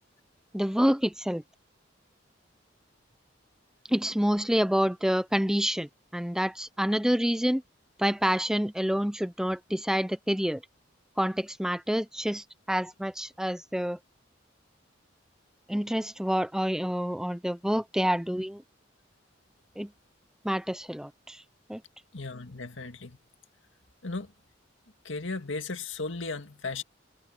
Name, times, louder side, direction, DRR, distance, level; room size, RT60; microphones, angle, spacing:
voice 1, 0.5-1.4 3.9-7.6 8.0-10.6 11.2-14.0 15.7-18.6 19.8-19.9 20.4-21.4 21.7-21.8, equal, 5° right, 0.7 m, -28 dB
voice 2, 22.1-23.2 24.0-24.3 25.0-26.8, left 3 dB, 85° left, 2.0 m, -35 dB
head